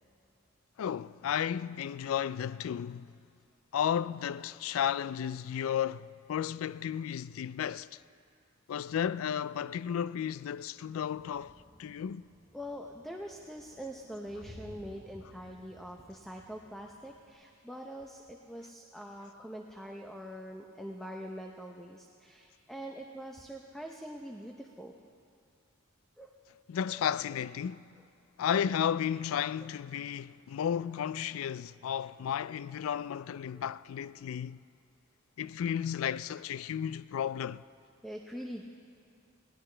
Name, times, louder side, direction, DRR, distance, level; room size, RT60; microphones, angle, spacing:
voice 1, 0.8-3.1 3.7-8.0 8.7-12.3 26.7-27.8 28.4-34.6 35.4-37.6, left 8 dB, 80° left, 0.3 m, -33 dB
sound 1, 11.1-17.3, equal, 25° left, 3.8 m, -56 dB
voice 2, 12.5-24.9 26.2-26.4 26.9-27.4 33.5-33.6 38.0-38.6, equal, ahead, 0.7 m, -44 dB
20.5 x 17.0 x 3.3 m
head